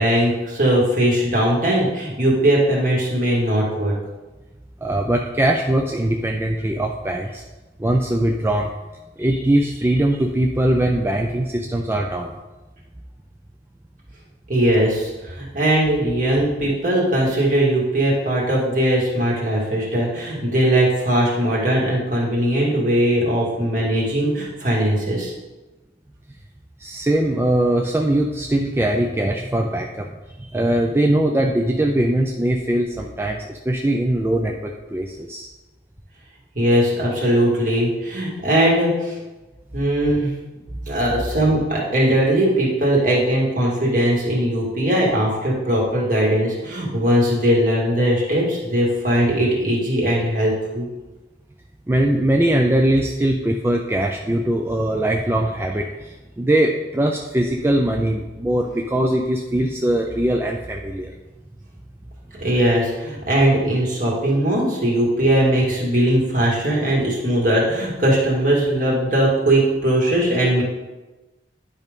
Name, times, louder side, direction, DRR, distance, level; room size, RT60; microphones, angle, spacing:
voice 1, 0.0-3.9 14.5-25.3 36.5-39.2 39.7-40.3 40.9-50.9 62.4-70.6, right 1 dB, 45° right, -4 dB, 2.2 m, -19 dB
voice 2, 4.8-7.4 7.8-8.7 9.2-12.4 26.8-30.1 30.4-35.5 51.9-61.1, right 1 dB, 15° right, 2 dB, 0.4 m, -21 dB
10.5 x 5.2 x 3.6 m, 1.1 s
head